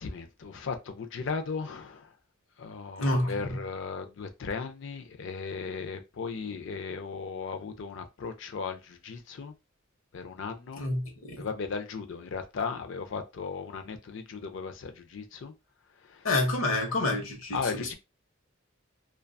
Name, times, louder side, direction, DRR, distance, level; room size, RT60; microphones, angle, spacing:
voice 1, 0.0-2.1 2.6-9.5 10.1-10.9 11.4-15.5 16.0-16.3 17.5-17.9, left 5 dB, 65° left, 0.4 m, -36 dB
voice 2, 3.0-3.6 10.8-11.5 16.2-17.9, left 2 dB, 85° left, 0.8 m, -28 dB
2.5 x 2.2 x 2.2 m
head